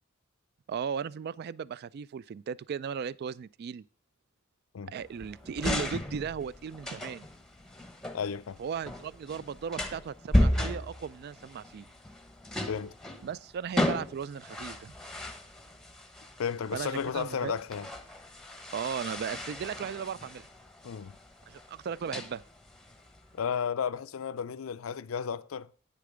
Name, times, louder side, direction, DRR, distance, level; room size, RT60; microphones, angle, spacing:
voice 1, 0.7-3.8 4.9-7.3 8.6-11.9 13.2-14.9 16.7-17.5 18.7-20.5 21.5-22.4, right 7 dB, 50° right, 0.3 m, -36 dB
sound 1, 5.0-23.4, left 1 dB, ahead, 1.0 m, -35 dB
voice 2, 8.1-8.6 12.7-12.9 16.4-17.9 20.8-21.2 23.3-25.7, left 7 dB, 85° left, 0.5 m, -33 dB
9.6 x 6.8 x 4.9 m
head